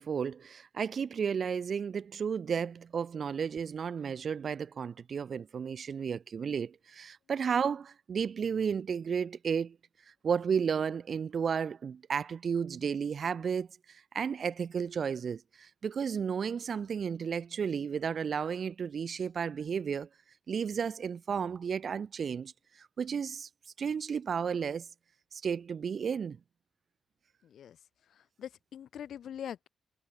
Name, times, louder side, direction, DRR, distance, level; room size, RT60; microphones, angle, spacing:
voice 1, 0.0-9.8 10.2-20.1 20.5-23.5 23.8-24.9 25.3-26.4, right 6 dB, 60° right, 2.3 m, -33 dB
voice 2, 27.4-27.8 28.1-29.7, left 9 dB, 85° left, 5.4 m, -43 dB
cardioid pair, 110°, 0 cm